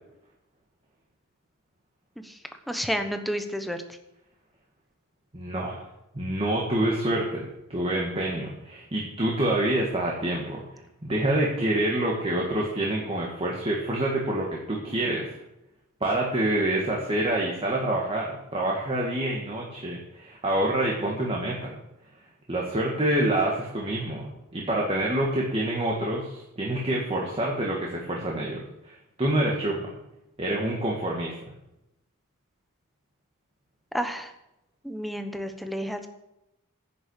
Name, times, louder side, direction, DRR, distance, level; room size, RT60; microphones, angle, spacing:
voice 1, 2.7-3.8 33.9-34.3 34.8-36.1, equal, ahead, 7 dB, 1.0 m, -30 dB
voice 2, 5.3-5.8 6.1-10.6 11.0-15.3 16.0-21.7 22.5-29.9 30.4-31.4, right 1 dB, 25° right, -2 dB, 1.7 m, -27 dB
10.5 x 6.9 x 8.2 m, 0.89 s
head